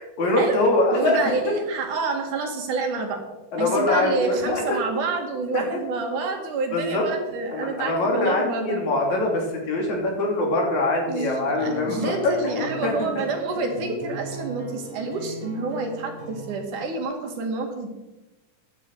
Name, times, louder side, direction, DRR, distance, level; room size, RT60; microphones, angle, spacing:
voice 1, 0.2-1.3 3.5-4.8 5.5-5.6 6.7-7.1 7.5-12.9, left 2 dB, 70° left, 0 dB, 4.4 m, -23 dB
voice 2, 0.9-3.2 3.6-8.8 11.1-17.9, right 3 dB, 85° right, 4 dB, 3.6 m, -28 dB
sound 1, 11.6-16.6, right 1 dB, 15° right, 4.9 m, -37 dB
15.5 x 11.0 x 4.8 m, 1.0 s
omnidirectional pair, 3.5 m